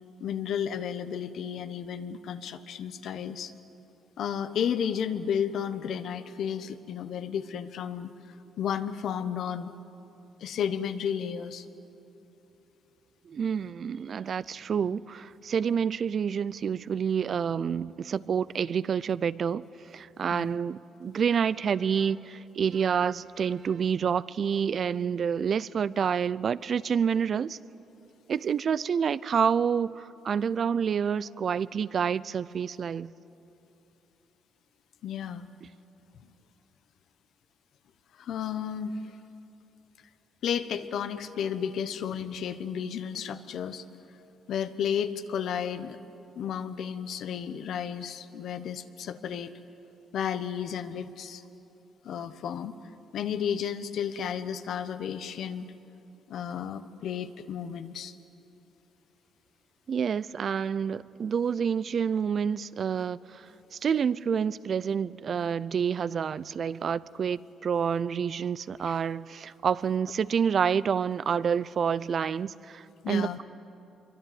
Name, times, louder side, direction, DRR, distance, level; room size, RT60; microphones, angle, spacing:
voice 1, 0.2-3.5 4.2-8.1 8.6-9.7 10.4-11.7 20.3-20.5 35.0-35.5 38.2-39.2 40.4-43.8 44.5-46.0 46.4-49.5 50.1-51.4 52.0-52.8 53.1-55.6 56.3-58.1 68.9-69.0 73.0-73.4, left 8 dB, 70° left, 1.1 m, -32 dB
voice 2, 13.3-19.6 19.9-27.6 28.3-33.1 59.9-63.4 63.7-73.4, right 7 dB, 50° right, 0.5 m, -28 dB
25.0 x 23.5 x 9.4 m
cardioid pair, 90°, 0 cm